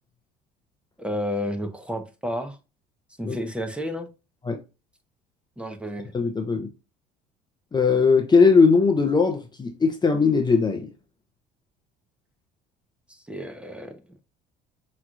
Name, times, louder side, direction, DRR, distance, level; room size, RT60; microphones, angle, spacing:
voice 1, 1.0-2.6 3.2-4.1 5.6-6.1 13.1-14.0, equal, 5° right, 1.1 m, -31 dB
voice 2, 6.1-6.7 7.7-10.9, left 4 dB, 20° left, 0.8 m, -19 dB
5.6 x 3.2 x 2.5 m
supercardioid pair, 80°, 19 cm